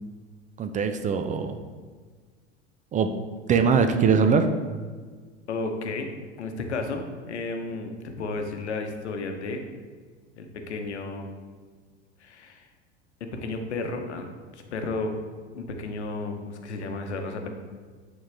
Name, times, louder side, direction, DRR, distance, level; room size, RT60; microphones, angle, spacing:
voice 1, 0.6-1.6 2.9-3.1 3.5-4.5, right 6 dB, 25° right, 7 dB, 0.4 m, -22 dB
voice 2, 5.5-6.1 6.4-9.6 10.4-11.3 12.2-12.7 13.2-15.2 15.5-17.5, left 3 dB, 75° left, 5 dB, 0.9 m, -33 dB
8.6 x 3.9 x 3.4 m, 1.5 s
figure-of-eight pair, 80°, 34 cm